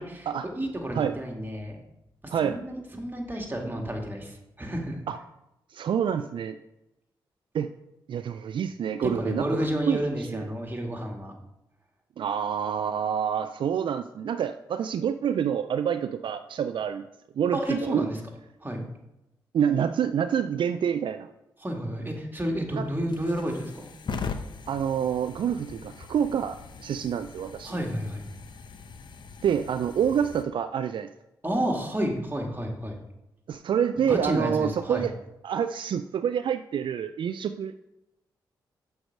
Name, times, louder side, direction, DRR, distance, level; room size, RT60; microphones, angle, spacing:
voice 1, 0.5-1.8 2.2-5.0 9.0-11.3 17.5-18.2 18.6-18.9 21.6-23.9 27.6-28.2 31.4-33.0 34.1-35.1, equal, 20° right, 2 dB, 1.9 m, -31 dB
voice 2, 5.7-6.6 7.5-7.7 8.1-9.6 9.9-10.4 12.2-17.1 17.4-18.1 19.5-21.3 22.7-22.9 24.7-27.7 29.4-31.1 33.5-35.1 35.4-37.8, right 8 dB, 65° right, 10 dB, 0.4 m, -27 dB
sound 1, 22.8-30.4, left 5 dB, 60° left, 0.7 m, -40 dB
6.3 x 4.6 x 6.4 m, 0.90 s
supercardioid pair, 55°, 9 cm